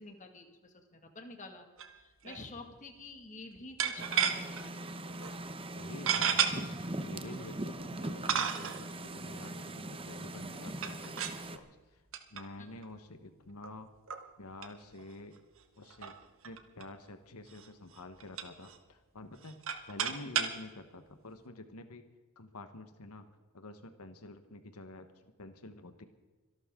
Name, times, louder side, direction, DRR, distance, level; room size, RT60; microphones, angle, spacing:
voice 1, 0.0-1.7 1.9-4.7 7.8-8.0 12.6-12.7, left 2 dB, 35° left, 4 dB, 2.0 m, -49 dB
sound 1, 1.8-2.0 2.2-2.4 3.8-4.6 5.2-5.3 6.1-6.5 7.4-7.5 8.3-8.8 10.7-11.4 12.1-12.4 12.8-12.9 13.6-13.7 14.1-14.2 14.6-14.7 15.0-15.1 15.4-15.5 15.9-16.8 17.5-17.7 17.9-18.8 19.3-20.6, right 8 dB, 60° right, 1.4 m, -32 dB
sound 2, 4.0-11.6, right 1 dB, 25° right, 0.9 m, -41 dB
voice 2, 5.7-6.7 7.0-12.0 12.3-13.9 14.4-15.3 15.8-16.1 16.4-19.6 19.9-22.0 22.4-23.2 23.5-26.0, left 2 dB, 90° left, 8 dB, 1.3 m, -49 dB
25.5 x 12.0 x 3.8 m, 1.3 s
head